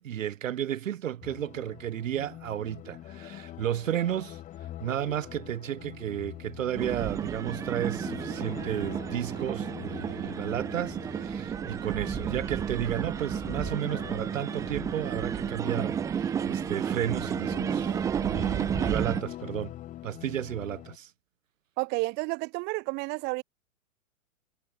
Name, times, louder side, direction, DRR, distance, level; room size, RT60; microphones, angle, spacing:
voice 1, 0.0-4.4 4.8-19.7 20.0-21.1, right 11 dB, 65° right, 1.9 m, -33 dB
sound 1, 1.2-21.0, left 13 dB, 20° left, 6.5 m, -44 dB
sound 2, 6.8-19.2, right 8 dB, 10° right, 1.0 m, -32 dB
voice 2, 21.8-23.4, right 27 dB, 25° right, 2.9 m, -31 dB
hypercardioid pair, 165°, 42 cm